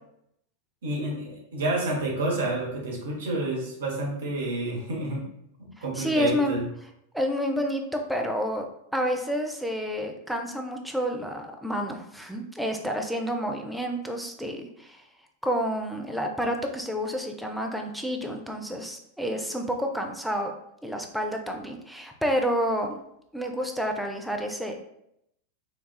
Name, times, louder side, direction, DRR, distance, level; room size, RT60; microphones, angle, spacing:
voice 1, 0.8-5.2 5.6-6.6, right 2 dB, 60° right, -2 dB, 0.9 m, -29 dB
voice 2, 6.0-6.6 7.1-8.6 8.9-15.0 15.4-20.5 20.8-23.0 23.3-24.7, equal, ahead, 2 dB, 0.4 m, -29 dB
4.0 x 2.3 x 2.2 m, 0.77 s
figure-of-eight pair, 90°, 0 cm